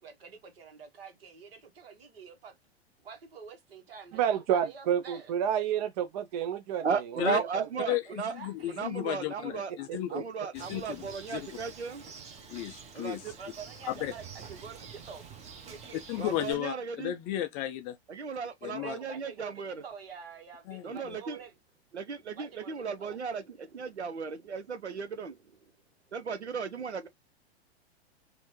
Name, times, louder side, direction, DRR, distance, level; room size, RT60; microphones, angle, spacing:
voice 1, 0.0-2.6 3.0-5.3 8.0-8.8 13.4-16.4 18.6-21.5 22.3-23.2, right 6 dB, 60° right, 1.5 m, -48 dB
voice 2, 4.1-6.9 7.2-7.3 7.6-7.9 9.9-10.2, right 9 dB, 40° right, 0.4 m, -30 dB
voice 3, 6.8-8.3 8.7-12.0 12.9-13.3 16.2-17.1 18.1-19.8 20.8-21.4 21.9-25.4 26.1-27.1, right 6 dB, 85° right, 0.6 m, -35 dB
voice 4, 7.9-10.2 10.5-11.5 12.5-13.3 14.0-14.1 16.1-18.0 18.6-18.9 20.7-21.2, left 14 dB, 25° left, 0.3 m, -34 dB
Bird, 10.5-16.5, right 6 dB, 20° right, 0.9 m, -48 dB
4.3 x 2.7 x 3.0 m
figure-of-eight pair, 100°, 33 cm